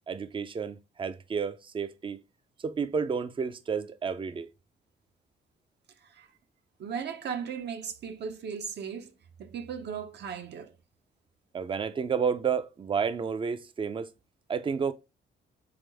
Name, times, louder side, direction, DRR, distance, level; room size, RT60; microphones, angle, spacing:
voice 1, 0.1-2.2 2.6-4.5 11.5-14.1 14.5-14.9, right 6 dB, 25° right, 0.5 m, -31 dB
voice 2, 6.8-9.1 9.4-10.7, right 7 dB, 60° right, 0.7 m, -37 dB
3.6 x 3.5 x 3.4 m
cardioid pair, 90°, 20 cm